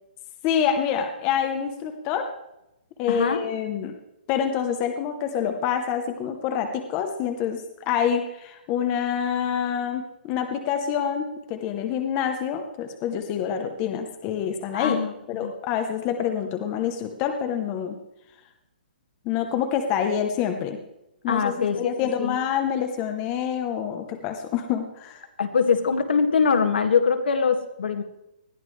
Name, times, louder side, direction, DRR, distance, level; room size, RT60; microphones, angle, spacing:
voice 1, 0.4-2.3 3.0-3.9 4.3-15.0 15.3-18.0 19.2-20.8 21.2-25.2, left 8 dB, 15° left, 5 dB, 0.8 m, -27 dB
voice 2, 3.1-3.4 14.7-15.1 15.4-15.5 21.3-21.9 22.2-22.4 25.4-28.0, left 5 dB, 75° left, 6 dB, 2.0 m, -22 dB
20.0 x 13.0 x 3.3 m, 0.87 s
hypercardioid pair, 180°, 5 cm